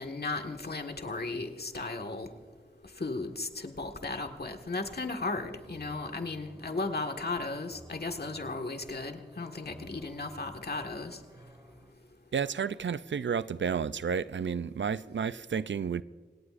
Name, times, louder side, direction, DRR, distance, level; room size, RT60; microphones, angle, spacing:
voice 1, 0.0-2.3 3.0-11.2, left 3 dB, 60° left, 1.7 m, -35 dB
sound 1, 4.8-11.9, right 1 dB, 20° right, 1.9 m, -54 dB
voice 2, 12.3-16.0, right 6 dB, 80° right, 0.5 m, -31 dB
28.0 x 18.0 x 2.5 m
wide cardioid pair, 65°, 19 cm